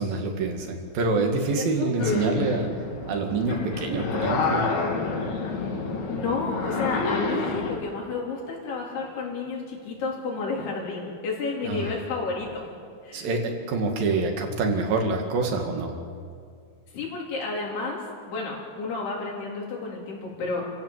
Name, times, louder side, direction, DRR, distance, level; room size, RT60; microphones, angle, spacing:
voice 1, 0.0-2.7 3.1-4.6 11.6-11.9 13.1-15.9, right 3 dB, 65° right, 3 dB, 3.9 m, -26 dB
voice 2, 1.6-1.9 5.6-5.7 6.1-12.7 13.0-13.3 16.9-20.7, left 4 dB, 85° left, -2 dB, 5.9 m, -31 dB
sound 1, 2.0-7.8, left 4 dB, 65° left, 4.6 m, -28 dB
29.5 x 15.5 x 7.7 m, 2.2 s
omnidirectional pair, 4.5 m